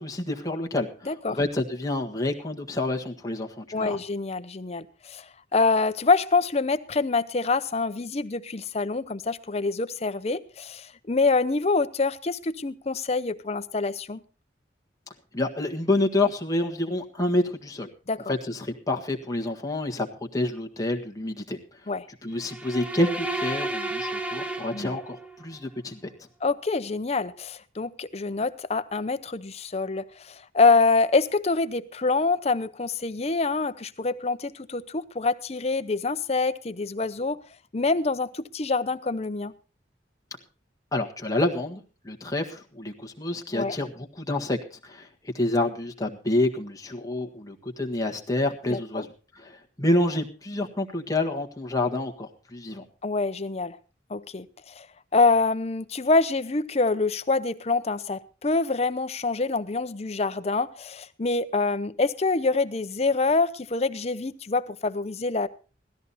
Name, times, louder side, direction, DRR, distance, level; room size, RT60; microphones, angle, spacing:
voice 1, 0.0-4.0 15.3-17.9 18.3-21.6 22.2-26.1 40.9-52.8, left 2 dB, 20° left, 1.6 m, -28 dB
voice 2, 1.1-1.4 3.7-5.3 5.5-14.2 18.1-18.3 21.9-22.1 24.7-25.0 26.4-37.4 37.7-39.5 43.5-43.8 48.7-49.1 53.0-53.8 54.1-54.9 55.1-65.5, left 3 dB, 35° left, 0.7 m, -26 dB
sound 1, 22.4-25.4, right 2 dB, 5° right, 0.7 m, -32 dB
17.0 x 13.5 x 4.2 m
head